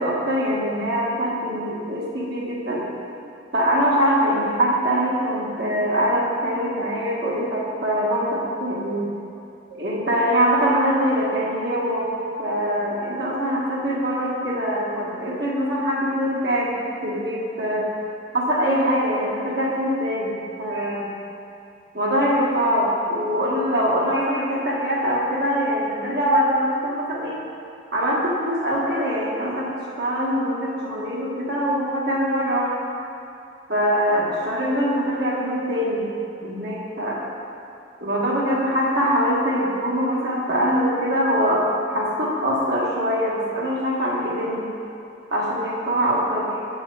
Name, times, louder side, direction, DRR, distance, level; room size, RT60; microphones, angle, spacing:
voice 1, 0.0-2.9 3.5-9.1 9.7-12.1 12.4-16.8 17.0-17.8 18.3-20.3 20.6-21.1 21.9-27.4 27.9-32.7 33.7-36.1 36.4-37.2 38.0-44.6 45.3-46.5, equal, 55° right, -5 dB, 1.6 m, -23 dB
7.7 x 4.8 x 6.8 m, 2.6 s
head